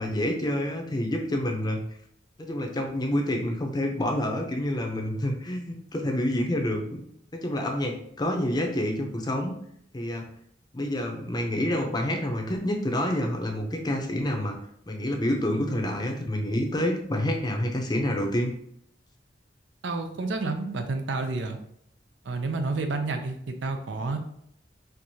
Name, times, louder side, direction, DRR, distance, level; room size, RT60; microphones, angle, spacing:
voice 1, 0.0-1.8 2.4-7.0 7.4-9.5 9.9-10.3 10.7-14.6 14.9-18.5, left 1 dB, 25° left, 3 dB, 0.5 m, -28 dB
voice 2, 19.8-21.6 22.3-24.2, right 3 dB, 85° right, 6 dB, 0.5 m, -30 dB
4.5 x 2.4 x 2.7 m, 0.70 s
head